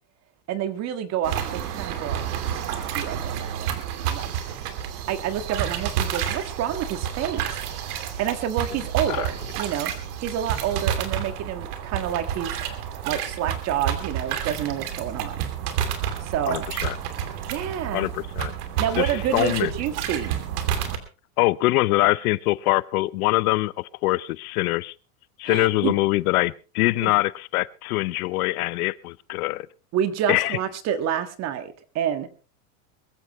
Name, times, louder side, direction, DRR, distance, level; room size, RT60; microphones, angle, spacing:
voice 1, 0.5-2.3 2.9-4.6 5.1-9.9 10.2-12.6 13.0-15.5 16.2-16.7 17.5-18.1 18.8-20.4 25.4-26.0 27.0-27.1 29.9-32.3, right 9 dB, 35° right, 11 dB, 1.7 m, -29 dB
sound 1, 1.2-21.0, right 9 dB, 70° right, 2.9 m, -30 dB
voice 2, 16.5-16.9 17.9-18.5 19.0-19.7 21.4-24.9 25.4-29.7 30.3-30.6, left 20 dB, 65° left, 20 dB, 0.7 m, -23 dB
22.0 x 14.0 x 3.1 m, 0.32 s
supercardioid pair, 155°, 48 cm